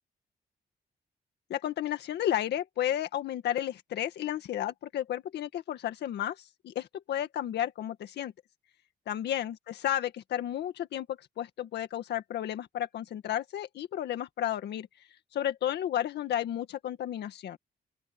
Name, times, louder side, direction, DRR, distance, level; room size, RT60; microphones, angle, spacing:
voice 1, 1.5-8.3 9.1-9.6 9.8-14.9 15.3-17.6, left 11 dB, 85° left, 1.8 m, -32 dB
open air
cardioid pair, 70°, 17 cm